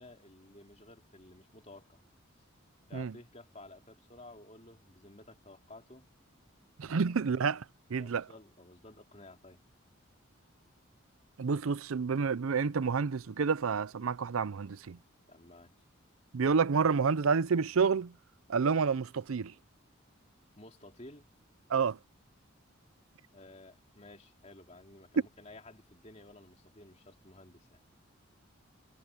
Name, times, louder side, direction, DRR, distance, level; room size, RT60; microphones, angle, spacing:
voice 1, 0.0-2.0 2.8-6.1 6.9-7.2 8.0-9.7 15.3-15.9 20.6-21.3 23.3-27.8, left 2 dB, 30° left, 3.0 m, -54 dB
voice 2, 6.8-7.6 7.9-8.3 11.4-15.0 16.3-18.1 18.5-19.5 21.7-22.0, right 5 dB, 80° right, 0.5 m, -29 dB
head